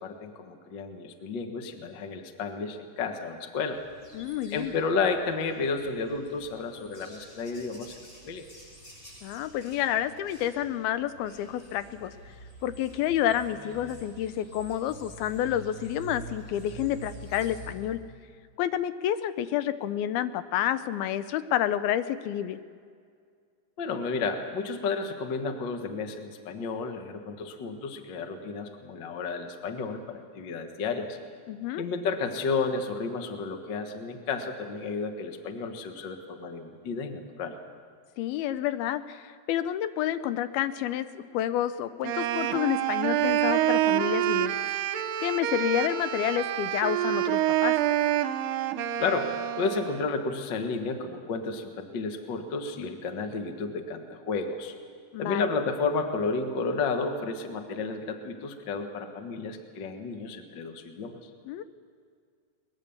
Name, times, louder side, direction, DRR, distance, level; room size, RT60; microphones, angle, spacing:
voice 1, 0.0-3.8 4.5-7.9 8.2-8.4 23.8-31.2 31.8-37.5 49.0-54.7 55.2-61.3, left 4 dB, 55° left, 5 dB, 1.2 m, -32 dB
sound 1, 3.7-17.7, right 2 dB, 30° left, 8.4 m, -48 dB
voice 2, 4.1-4.7 9.2-12.1 12.6-18.0 18.6-22.6 31.5-31.8 38.2-44.6 45.2-47.8 55.1-55.5 61.5-61.6, left 11 dB, 80° left, 13 dB, 2.5 m, -29 dB
Wind instrument woodwind instrument, 42.0-50.1, right 12 dB, 75° right, 2.3 m, -27 dB
22.5 x 20.5 x 7.1 m, 2.1 s
omnidirectional pair, 4.4 m